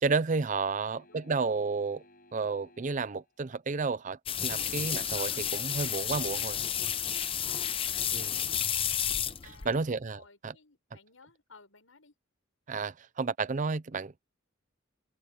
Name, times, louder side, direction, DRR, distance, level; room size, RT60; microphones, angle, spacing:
voice 1, 0.0-2.0 2.3-6.6 8.1-8.3 9.6-10.5 12.7-14.1, right 4 dB, 40° right, 0.5 m, -31 dB
voice 2, 0.6-1.6 5.1-5.4 7.4-9.1 9.4-9.8 10.1-12.1, left 4 dB, 80° left, 6.1 m, -58 dB
sound 1, 0.9-3.3 5.9-6.0, left 1 dB, 45° left, 6.8 m, -59 dB
sound 2, 4.3-9.8, left 9 dB, 25° left, 0.7 m, -31 dB
sound 3, 4.5-10.3, equal, 55° right, 2.2 m, -62 dB
head